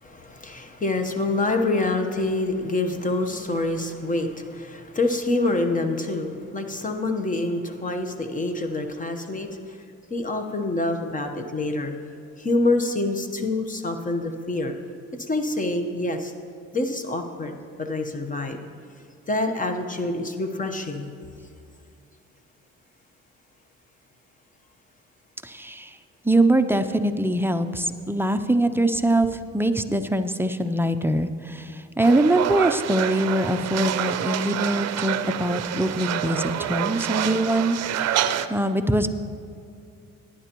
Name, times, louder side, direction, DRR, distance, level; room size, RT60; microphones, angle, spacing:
voice 1, 0.0-9.8 10.1-11.9 12.4-14.7 15.3-16.3 16.7-18.6 19.3-21.1, left 2 dB, 25° left, 6 dB, 1.0 m, -26 dB
voice 2, 25.4-26.0 26.2-39.1, right 1 dB, 10° right, 8 dB, 0.5 m, -23 dB
sound 1, 32.0-38.5, right 10 dB, 60° right, 0.5 m, -27 dB
18.0 x 10.0 x 3.0 m, 2.4 s
cardioid pair, 85°, 30 cm